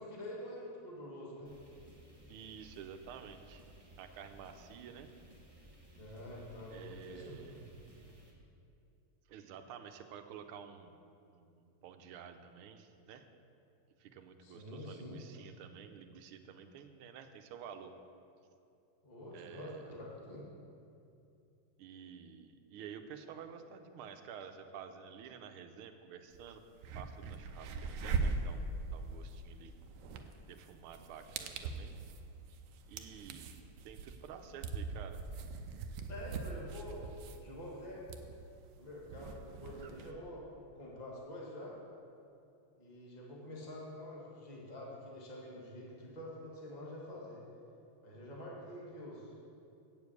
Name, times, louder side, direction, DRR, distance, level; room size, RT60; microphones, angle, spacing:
voice 1, 0.0-1.5 5.9-7.6 14.4-15.2 19.0-20.4 36.1-37.0 37.4-38.1 38.8-41.8 42.8-47.4 48.0-49.3, left 1 dB, 20° left, -4 dB, 1.8 m, -47 dB
sound 1, 1.4-8.3, equal, 15° right, 1.1 m, -58 dB
voice 2, 2.3-3.6 4.0-5.1 6.7-7.6 9.3-11.0 11.3-13.2 14.0-17.9 19.3-19.9 21.8-26.6 26.9-29.7 30.4-31.9 32.9-33.5 33.8-35.2, right 7 dB, 90° right, 7 dB, 1.6 m, -50 dB
sound 2, 26.3-26.4 26.7-40.1, right 4 dB, 70° right, 1.2 m, -41 dB
8.2 x 7.1 x 8.1 m, 2.7 s
omnidirectional pair, 2.3 m